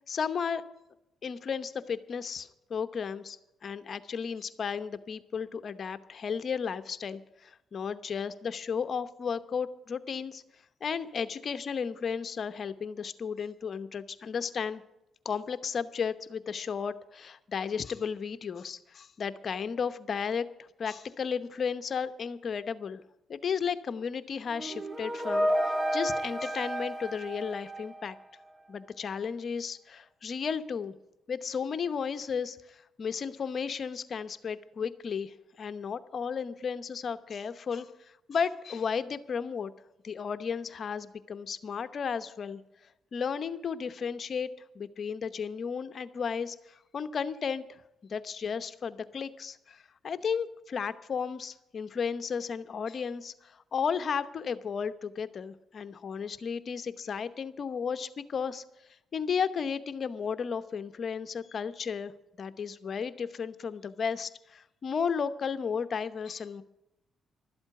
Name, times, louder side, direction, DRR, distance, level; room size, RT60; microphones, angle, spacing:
voice 1, 0.1-0.6 1.2-3.4 3.6-10.4 10.8-14.8 15.2-23.0 23.3-28.2 28.7-30.9 31.3-39.7 40.0-42.6 43.1-44.5 44.7-47.6 48.1-58.6 59.1-62.1 62.4-66.6, left 6 dB, 50° left, 12 dB, 0.9 m, -34 dB
sound 1, 24.5-28.4, equal, 20° right, 1.5 m, -31 dB
12.5 x 8.0 x 9.9 m, 0.86 s
cardioid pair, 90°, 0 cm